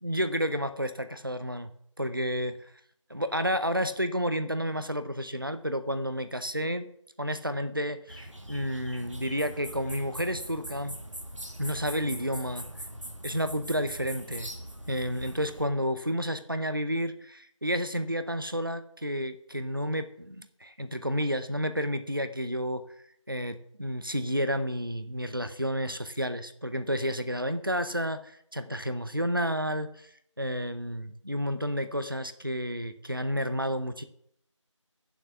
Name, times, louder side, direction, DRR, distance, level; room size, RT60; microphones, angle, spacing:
voice 1, 0.0-1.7 2.0-2.5 3.1-6.9 7.2-11.0 11.6-12.7 13.2-14.5 14.9-22.8 23.3-30.1 30.4-34.0, equal, 45° right, 11 dB, 0.6 m, -31 dB
sound 1, 8.1-15.6, right 1 dB, 70° right, 2.0 m, -42 dB
7.3 x 5.7 x 6.9 m, 0.68 s
figure-of-eight pair, 180°, 16 cm